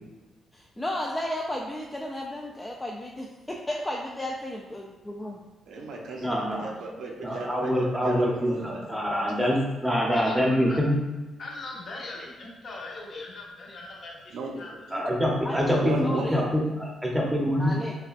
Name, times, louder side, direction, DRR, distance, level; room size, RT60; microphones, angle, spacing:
voice 1, 0.5-5.4 15.4-16.4 17.6-17.9, left 1 dB, 10° left, -2 dB, 0.3 m, -34 dB
voice 2, 5.7-8.8 9.1-9.5 14.3-15.0 15.8-16.3, right 3 dB, 75° right, 0 dB, 0.7 m, -36 dB
voice 3, 6.2-6.7 7.2-11.0 14.9-17.8, equal, 5° right, -2 dB, 0.8 m, -25 dB
voice 4, 11.4-14.9, left 2 dB, 50° left, -3 dB, 0.9 m, -40 dB
5.6 x 2.3 x 2.4 m, 1.1 s
cardioid pair, 115°, 0 cm